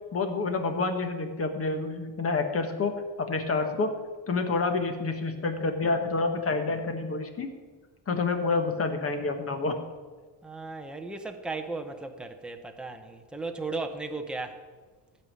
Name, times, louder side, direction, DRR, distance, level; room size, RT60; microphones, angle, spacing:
voice 1, 0.1-3.9 4.3-7.5 8.1-9.8, left 3 dB, 30° left, 6 dB, 1.4 m, -28 dB
voice 2, 10.4-14.6, right 3 dB, ahead, 5 dB, 0.8 m, -36 dB
15.5 x 5.6 x 8.7 m, 1.4 s
cardioid pair, 155°, 45 cm